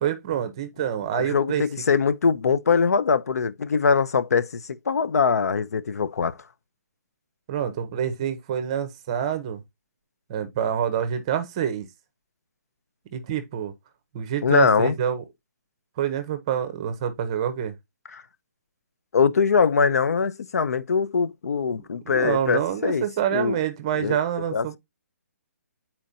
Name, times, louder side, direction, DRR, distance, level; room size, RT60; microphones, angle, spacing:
voice 1, 0.0-1.6 7.5-9.6 10.3-11.9 13.1-13.7 14.1-15.2 16.0-17.7 22.0-24.8, right 9 dB, 20° right, 0.7 m, -27 dB
voice 2, 1.2-6.4 14.4-14.9 18.1-18.2 19.1-23.0 23.3-23.6 23.9-24.2 24.5-24.8, left 5 dB, 80° left, 0.5 m, -22 dB
8.8 x 4.3 x 2.6 m
hypercardioid pair, 175°, 8 cm